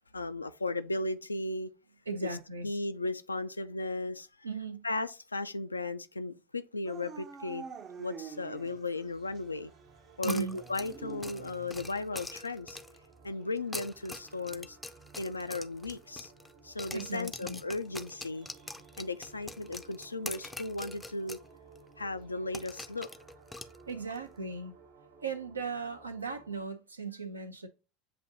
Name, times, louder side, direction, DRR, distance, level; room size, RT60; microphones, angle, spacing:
voice 1, 0.1-1.7 2.6-4.3 4.8-7.6 8.0-9.7 10.2-12.8 13.2-14.8 15.2-16.3 16.6-18.5 19.0-21.4 22.0-23.1, left 2 dB, 90° left, 0.3 m, -36 dB
voice 2, 2.1-2.7 4.4-4.9 10.2-10.6 16.9-17.6 23.9-24.7 25.2-27.7, right 4 dB, 85° right, 0.6 m, -37 dB
Dog / Siren, 6.9-9.0 9.4-9.5 10.5-12.0, right 6 dB, 40° right, 0.6 m, -46 dB
sound 1, 8.8-26.6, right 5 dB, 70° right, 1.2 m, -57 dB
sound 2, 10.2-13.1 13.6-16.5 16.8-21.5 21.7-21.8 22.5-24.2, left 2 dB, 10° left, 0.4 m, -44 dB
7.6 x 2.6 x 2.6 m
figure-of-eight pair, 75°, 0 cm